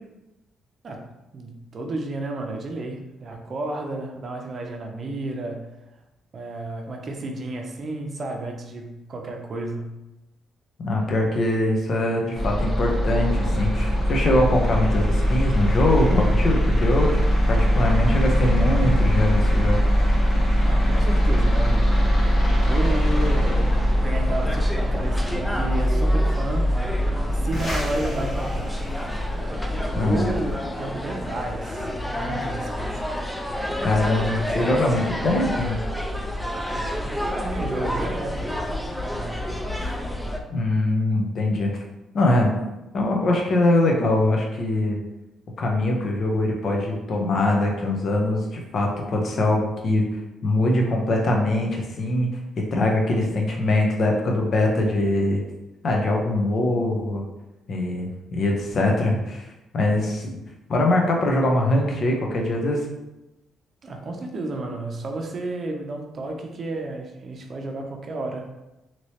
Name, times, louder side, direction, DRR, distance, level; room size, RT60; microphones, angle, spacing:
voice 1, 1.3-5.7 6.3-10.0 20.6-26.7 27.3-28.7 29.9-32.9 36.7-38.5 39.1-39.4 39.7-40.0 63.8-68.5, right 2 dB, 45° right, 2 dB, 0.6 m, -32 dB
voice 2, 10.8-17.2 17.5-19.8 29.9-30.3 33.8-35.8 40.5-41.7 42.1-42.5 42.9-45.0 45.6-50.0 50.4-52.3 52.6-55.4 55.8-57.2 57.7-59.5 59.7-60.3 60.7-62.8, left 1 dB, 55° left, 0 dB, 0.7 m, -22 dB
sound 1, 12.4-30.5, equal, 35° left, 1.0 m, -21 dB
sound 2, 22.7-40.4, equal, 5° left, 0.4 m, -30 dB
3.0 x 2.9 x 2.9 m, 0.98 s
cardioid pair, 90°, 0 cm